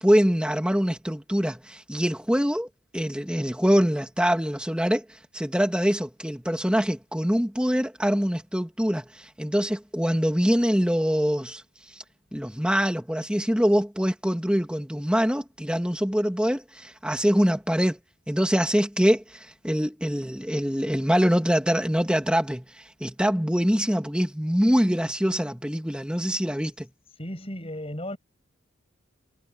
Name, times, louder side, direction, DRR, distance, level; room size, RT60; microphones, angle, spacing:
voice 1, 0.0-2.7 2.9-11.6 11.9-12.0 12.3-18.0 18.3-26.9, equal, 5° right, 2.5 m, -24 dB
voice 2, 27.2-28.2, left 1 dB, 30° left, 7.6 m, -34 dB
head